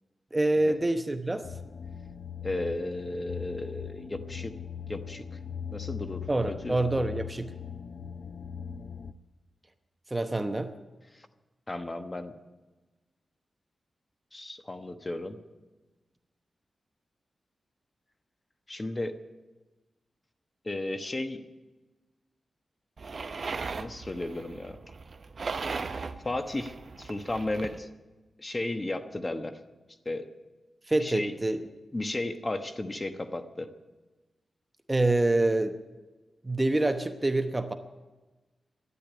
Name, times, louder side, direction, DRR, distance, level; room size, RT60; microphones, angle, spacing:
voice 1, 0.3-1.5 6.3-7.5 10.1-10.7 30.9-31.6 34.9-35.8 36.4-37.7, right 2 dB, 20° right, 8 dB, 0.9 m, -26 dB
sound 1, 1.4-9.1, left 8 dB, 60° left, 0.5 m, -40 dB
voice 2, 2.4-4.5 4.9-5.4 5.7-6.8 11.1-11.3 11.7-12.3 14.3-15.4 18.7-19.1 20.6-21.4 23.8-24.8 26.2-27.9 28.4-29.6 30.0-30.3 31.0-31.3 31.9-33.7, left 2 dB, 25° left, 8 dB, 1.1 m, -34 dB
sound 2, 23.0-27.8, right 4 dB, 50° right, 0.8 m, -38 dB
12.5 x 10.0 x 10.0 m, 1.2 s
wide cardioid pair, 100°, 0 cm